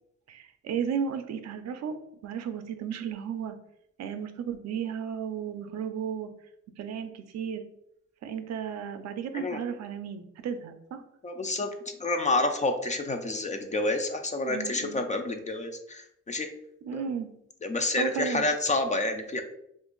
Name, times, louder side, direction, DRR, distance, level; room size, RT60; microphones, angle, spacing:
voice 1, 0.3-3.6 4.0-6.3 6.8-7.6 8.2-11.0 14.4-15.0 16.8-17.3 18.0-18.5, right 7 dB, 60° right, 8 dB, 0.5 m, -34 dB
voice 2, 11.2-11.7 12.0-16.5 16.9-17.0 17.6-19.4, left 2 dB, 25° left, 6 dB, 0.4 m, -29 dB
2.8 x 2.5 x 3.7 m, 0.76 s
cardioid pair, 90°, 30 cm